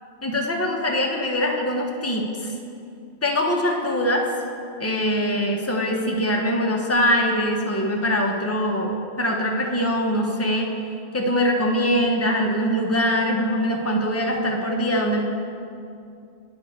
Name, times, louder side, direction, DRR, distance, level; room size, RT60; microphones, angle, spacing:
voice 1, 0.2-2.5 3.2-4.3 4.8-10.7 11.1-15.2, equal, 20° left, 0 dB, 0.3 m, -23 dB
9.2 x 6.4 x 3.6 m, 2.5 s
omnidirectional pair, 1.3 m